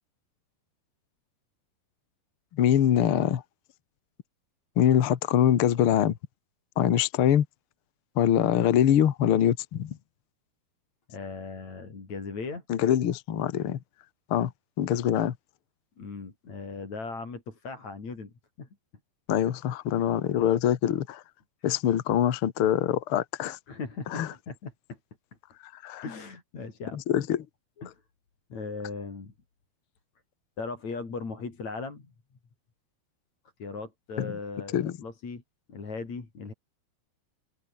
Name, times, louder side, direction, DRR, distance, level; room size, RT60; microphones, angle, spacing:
voice 1, 2.5-3.4 4.8-6.2 6.8-7.4 8.1-10.0 12.7-13.8 14.3-14.5 14.8-15.3 19.3-21.2 21.6-23.6 24.1-24.3 25.8-26.0 26.9-27.4 34.2-34.3 34.7-34.9, left 10 dB, 85° left, 1.2 m, -24 dB
voice 2, 11.1-12.6 16.0-18.3 18.6-18.7 23.7-25.0 26.0-27.0 27.8-28.0 28.5-29.3 30.6-32.1 33.6-35.4 35.7-36.5, left 4 dB, 40° left, 5.9 m, -38 dB
omnidirectional pair, 4.8 m